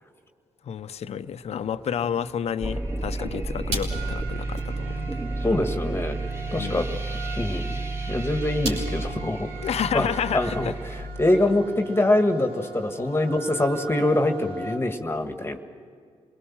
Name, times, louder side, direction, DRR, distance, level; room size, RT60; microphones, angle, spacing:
voice 1, 0.6-5.2 6.6-7.0 9.6-10.7, left 8 dB, 65° left, 12 dB, 0.8 m, -30 dB
sound 1, 0.7-11.2, right 2 dB, 85° right, 4.4 m, -42 dB
sound 2, 2.6-11.0, right 2 dB, 25° right, 3.3 m, -31 dB
sound 3, 3.9-14.8, right 4 dB, 65° right, 3.9 m, -40 dB
voice 2, 5.4-6.2 6.5-7.8 8.1-9.5 9.9-10.1 10.3-15.6, left 1 dB, 20° left, 6 dB, 1.6 m, -24 dB
26.5 x 19.0 x 7.3 m, 2.2 s
supercardioid pair, 55°, 12 cm